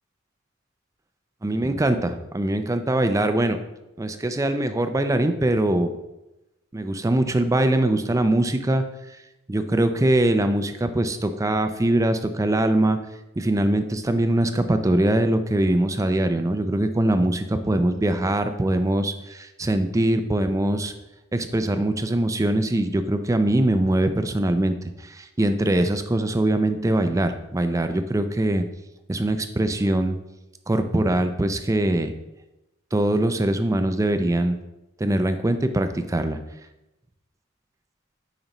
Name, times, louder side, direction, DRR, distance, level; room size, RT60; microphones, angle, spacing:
voice 1, 1.4-3.6 4.0-5.9 6.7-9.2 9.5-13.0 13.4-20.9 21.3-28.6 29.1-30.2 30.7-32.1 32.9-34.6 35.0-36.4, right 1 dB, 15° right, 9 dB, 0.4 m, -22 dB
8.9 x 5.4 x 3.0 m, 0.96 s
head